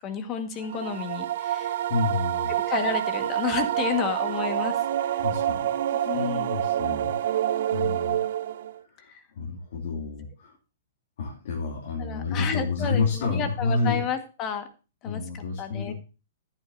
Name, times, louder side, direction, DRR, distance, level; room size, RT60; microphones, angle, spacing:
voice 1, 0.0-1.8 2.7-5.2 6.1-6.5 9.1-9.2 12.0-14.7 15.0-15.9, left 7 dB, 35° left, 8 dB, 1.8 m, -31 dB
sound 1, 0.6-8.8, right 11 dB, 60° right, 0.6 m, -27 dB
voice 2, 1.9-2.5 5.2-5.7 6.0-7.1 7.7-8.2 9.0-10.5 11.2-14.0 15.0-15.9, left 4 dB, 60° left, -2 dB, 2.9 m, -29 dB
14.0 x 8.8 x 2.8 m, 0.32 s
hypercardioid pair, 115°, 0 cm